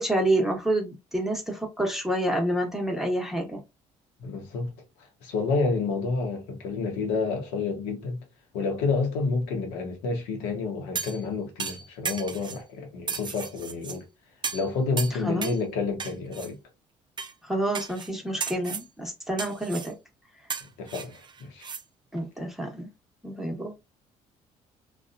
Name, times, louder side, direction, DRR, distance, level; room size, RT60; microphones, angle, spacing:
voice 1, 0.0-3.6 15.2-15.5 17.5-19.9 22.1-22.9 23.2-23.7, right 1 dB, ahead, 1.1 m, -28 dB
voice 2, 4.2-4.7 5.2-8.2 8.5-14.0 14.5-16.6 20.8-21.7, left 4 dB, 90° left, 0.9 m, -29 dB
sound 1, 10.9-11.2 11.6-12.6 13.1-14.0 14.4-14.7 15.0-15.6 16.0-16.5 17.2-17.3 17.7-18.1 18.4-18.9 19.4-19.9 20.5-21.8 22.2-22.3, right 5 dB, 30° right, 0.5 m, -34 dB
2.6 x 2.4 x 2.4 m
supercardioid pair, 65°, 15 cm